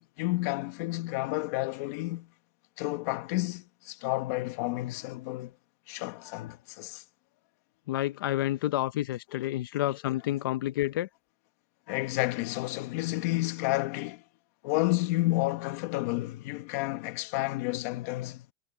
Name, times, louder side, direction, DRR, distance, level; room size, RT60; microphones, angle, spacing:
voice 1, 0.0-2.3 2.8-5.5 5.9-7.0 9.3-9.5 11.9-14.2 14.6-18.5, left 19 dB, 50° left, 1.4 m, -31 dB
voice 2, 7.9-11.1, left 15 dB, 85° left, 0.8 m, -29 dB
supercardioid pair, 180°, 11 cm